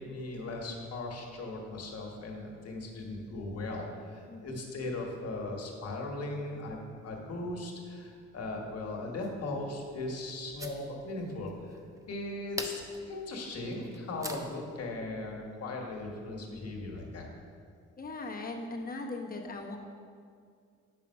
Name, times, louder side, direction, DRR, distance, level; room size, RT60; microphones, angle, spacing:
voice 1, 0.0-6.8 7.0-11.8 12.1-17.3, left 2 dB, 55° left, 0 dB, 1.5 m, -38 dB
voice 2, 4.3-4.6 18.0-19.8, left 2 dB, 30° left, 1 dB, 1.1 m, -39 dB
sound 1, 9.2-14.7, right 1 dB, 10° right, 0.8 m, -45 dB
7.3 x 5.4 x 5.7 m, 2.2 s
cardioid pair, 90°, 30 cm